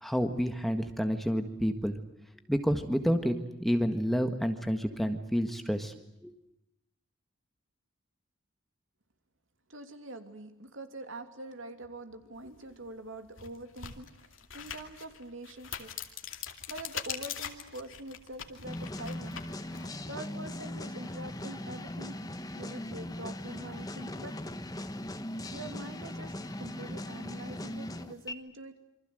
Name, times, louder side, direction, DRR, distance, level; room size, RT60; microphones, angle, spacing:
voice 1, 0.0-2.0 2.5-5.9 6.2-6.3, equal, ahead, 6 dB, 1.6 m, -29 dB
voice 2, 9.7-15.9 16.7-19.4 20.1-22.2 22.6-24.3 25.5-28.7, right 1 dB, 70° right, 7 dB, 2.9 m, -44 dB
sound 1, 12.6-12.7 13.3-19.9, left 8 dB, 70° left, 2.5 m, -42 dB
sound 2, 18.6-28.3, left 1 dB, 20° left, 1.2 m, -39 dB
27.5 x 25.0 x 7.9 m, 0.84 s
head